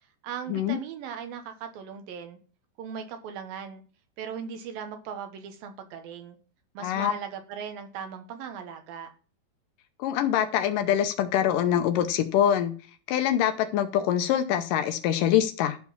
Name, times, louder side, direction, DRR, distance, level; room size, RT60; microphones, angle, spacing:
voice 1, 0.2-2.4 2.8-3.8 4.2-6.4 6.7-9.1, right 7 dB, 70° right, 7 dB, 2.6 m, -38 dB
voice 2, 6.8-7.1 10.0-12.7 13.1-15.8, left 10 dB, 75° left, 7 dB, 2.0 m, -24 dB
11.5 x 4.5 x 7.1 m, 0.39 s
omnidirectional pair, 4.7 m